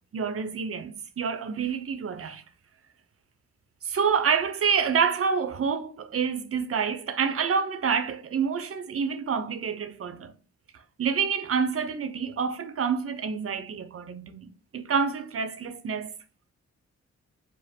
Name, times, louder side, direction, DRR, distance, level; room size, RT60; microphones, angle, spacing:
voice 1, 0.1-2.4 3.8-10.3 11.0-16.1, right 6 dB, 50° right, 0.7 m, -28 dB
5.0 x 2.1 x 4.2 m
cardioid pair, 55°, 29 cm